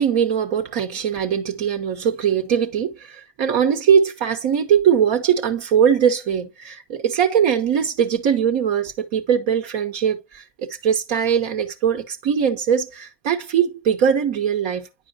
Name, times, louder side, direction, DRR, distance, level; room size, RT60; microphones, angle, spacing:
voice 1, 0.0-14.9, right 8 dB, 70° right, 1.0 m, -21 dB
9.2 x 4.9 x 2.7 m
hypercardioid pair, 45°, 49 cm